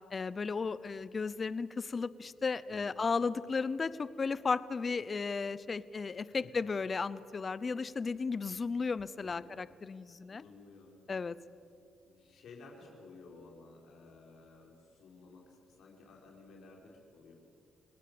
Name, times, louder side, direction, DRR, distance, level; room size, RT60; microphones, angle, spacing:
voice 1, 0.1-10.4 11.1-11.4, left 4 dB, 35° left, 17 dB, 0.8 m, -34 dB
voice 2, 2.7-3.0 6.3-6.5 9.2-9.5 10.3-11.0 12.0-17.3, left 3 dB, 70° left, 0 dB, 5.4 m, -55 dB
29.0 x 19.5 x 6.9 m, 2.5 s
cardioid pair, 90°, 0 cm